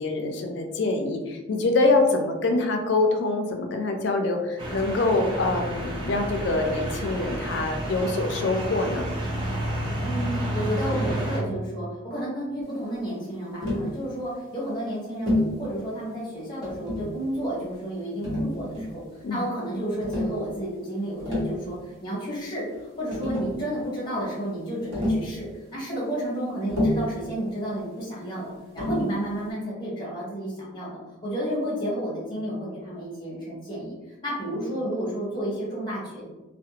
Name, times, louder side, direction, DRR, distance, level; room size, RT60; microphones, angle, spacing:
voice 1, 0.0-9.1 19.2-19.4, left 2 dB, 55° left, 4 dB, 0.3 m, -25 dB
sound 1, 4.6-11.4, right 1 dB, 25° right, 0.5 m, -30 dB
voice 2, 10.0-19.0 19.3-34.0 34.2-36.3, equal, 20° left, -5 dB, 0.7 m, -31 dB
Tap, 13.6-13.9 15.3-15.6 16.6-17.2 18.2-19.0 20.0-20.4 21.1-21.6 22.7-22.8 23.1-23.6 24.9-25.3 26.7-27.2 28.8-29.1, left 1 dB, 70° right, 1.0 m, -27 dB
2.4 x 2.1 x 2.7 m, 1.1 s
head